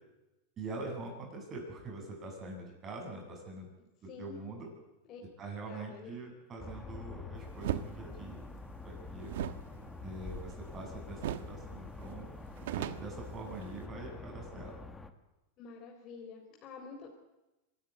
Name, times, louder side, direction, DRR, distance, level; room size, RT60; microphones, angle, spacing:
voice 1, 0.6-3.7 4.0-4.7 5.4-8.4 8.8-9.3 10.0-12.3 12.8-14.7, right 2 dB, 30° right, 2 dB, 7.7 m, -44 dB
voice 2, 4.1-4.4 5.1-5.2 5.7-6.2 15.6-17.1, left 5 dB, 35° left, 0 dB, 3.9 m, -48 dB
sound 1, 6.6-15.1, left 3 dB, 10° left, 1.7 m, -46 dB
sound 2, 7.6-7.9 9.3-10.8 11.2-11.6 11.9-12.0 12.3-13.9, right 11 dB, 75° right, 1.2 m, -37 dB
25.0 x 13.5 x 9.7 m, 1.0 s
supercardioid pair, 135°, 0 cm